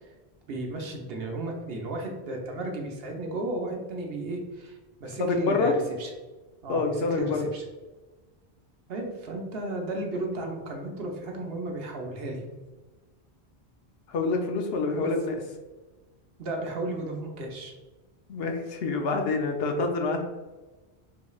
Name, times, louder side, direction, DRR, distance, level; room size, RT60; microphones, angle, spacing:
voice 1, 0.5-5.7 6.0-6.1 6.6-7.6 8.9-12.4 14.9-15.1 16.4-17.7, right 2 dB, 65° right, 1 dB, 0.9 m, -34 dB
voice 2, 5.0-5.7 6.7-7.4 14.1-15.3 18.3-20.2, left 3 dB, 70° left, 3 dB, 0.8 m, -27 dB
3.8 x 3.1 x 2.3 m, 1.2 s
omnidirectional pair, 1.1 m